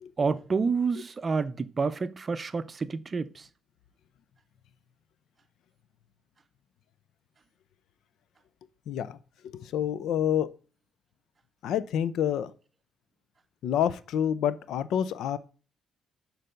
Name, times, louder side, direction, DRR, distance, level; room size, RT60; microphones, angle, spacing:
voice 1, 0.2-3.3, right 5 dB, 35° right, 0.5 m, -28 dB
voice 2, 8.9-9.2 9.4-10.5 11.6-12.5 13.6-15.4, left 9 dB, 80° left, 0.5 m, -28 dB
6.7 x 4.0 x 5.1 m
cardioid pair, 90°, 0 cm